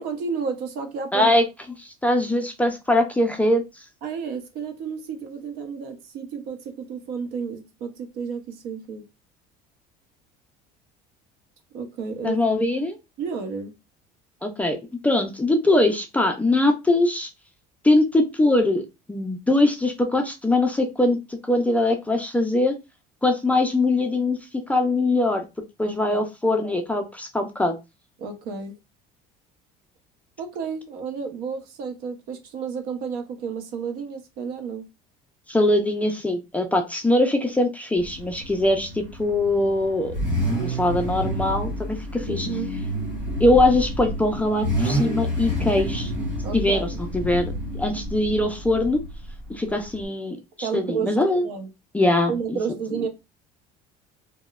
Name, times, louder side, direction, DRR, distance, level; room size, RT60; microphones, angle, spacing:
voice 1, 0.0-1.3 4.0-9.0 11.7-12.4 13.2-13.7 25.8-26.2 28.2-28.8 30.4-34.9 42.3-42.8 46.4-47.0 50.6-51.7 52.3-53.1, right 6 dB, 70° right, 0.7 m, -31 dB
voice 2, 1.1-1.4 1.8-3.6 12.2-13.0 14.4-14.8 15.0-17.3 17.8-18.8 19.1-22.8 23.2-24.4 24.7-25.4 25.8-27.7 35.5-40.1 40.6-42.5 43.4-46.1 46.5-46.9 47.1-49.0 49.5-51.5 51.9-52.6 52.9-53.0, left 2 dB, 10° left, 0.3 m, -22 dB
Car / Idling / Accelerating revving vroom, 38.0-50.1, equal, 5° right, 1.3 m, -29 dB
2.9 x 2.1 x 2.2 m
cardioid pair, 125°, 17 cm